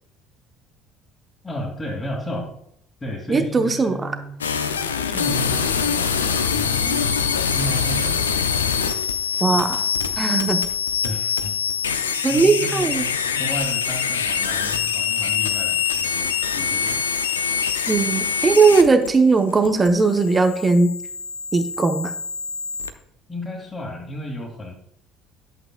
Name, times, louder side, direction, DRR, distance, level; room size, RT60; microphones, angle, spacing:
voice 1, 1.4-2.6 3.0-4.3 5.0-7.2 7.5-8.2 9.9-10.2 11.0-11.5 12.3-13.1 13.4-17.0 23.3-24.7, left 1 dB, 20° left, -5 dB, 2.0 m, -32 dB
voice 2, 3.3-4.1 9.4-9.8 10.2-10.6 12.2-13.0 17.9-20.9 21.5-22.1, right 4 dB, 25° right, 7 dB, 0.8 m, -18 dB
sound 1, 4.4-22.9, left 6 dB, 85° left, 0.5 m, -24 dB
11.0 x 8.3 x 2.3 m, 0.72 s
figure-of-eight pair, 55°, 0 cm